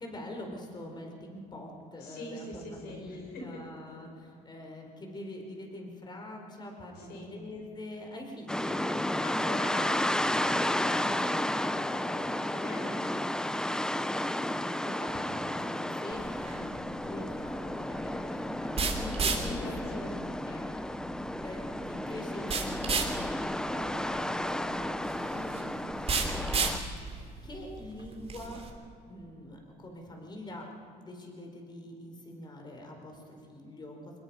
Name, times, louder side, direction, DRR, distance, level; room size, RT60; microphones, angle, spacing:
voice 1, 0.0-8.8 14.2-20.1 20.5-21.1 21.4-28.6 29.0-30.7 30.9-34.2, left 1 dB, 25° left, 2 dB, 4.8 m, -44 dB
voice 2, 2.0-3.4 6.9-7.3 9.2-13.2 19.4-20.4 25.3-25.7, left 1 dB, 70° left, 1 dB, 6.6 m, -43 dB
sound 1, 8.5-26.8, left 1 dB, 5° left, 0.6 m, -32 dB
sound 2, 16.1-28.7, right 4 dB, 35° right, 3.2 m, -35 dB
24.0 x 21.0 x 5.7 m, 2.6 s
cardioid pair, 110°, 17 cm